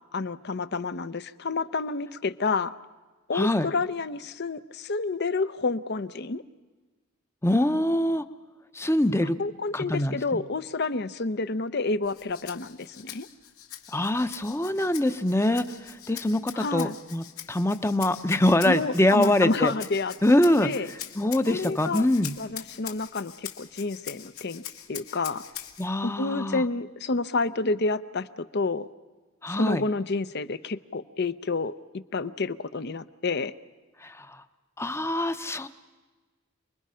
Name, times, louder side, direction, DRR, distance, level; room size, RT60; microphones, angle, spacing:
voice 1, 0.1-2.7 3.3-6.4 9.4-13.3 16.5-17.0 18.6-20.1 20.6-20.9 21.5-22.1 22.4-24.6 24.9-25.4 26.0-28.9 29.5-31.7 32.1-33.5, left 3 dB, 50° left, 13 dB, 0.7 m, -29 dB
voice 2, 3.3-3.7 7.4-8.2 8.7-9.4 9.7-10.4 13.9-15.7 16.1-19.7 20.2-20.7 21.2-22.3 25.8-26.6 29.4-29.8 34.0-34.4 34.8-35.7, left 1 dB, 10° left, 11 dB, 0.7 m, -24 dB
Rattle (instrument), 12.0-25.9, left 10 dB, 80° left, 1.9 m, -43 dB
29.0 x 21.5 x 5.7 m, 1.3 s
head